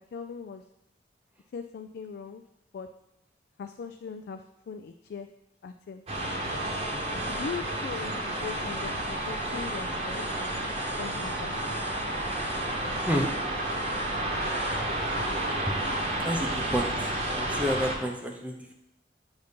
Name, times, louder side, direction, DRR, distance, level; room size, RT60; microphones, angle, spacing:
voice 1, 0.1-0.6 1.5-2.4 2.7-2.9 3.6-5.3 5.6-6.0 7.3-8.9 9.3-10.7 11.0-11.8, left 6 dB, 60° left, 7 dB, 0.3 m, -40 dB
sound 1, 6.1-18.0, right 1 dB, 35° right, 0.9 m, -31 dB
voice 2, 16.2-16.9 17.3-18.7, equal, 10° right, 2 dB, 0.6 m, -29 dB
8.0 x 2.7 x 5.1 m, 0.91 s
head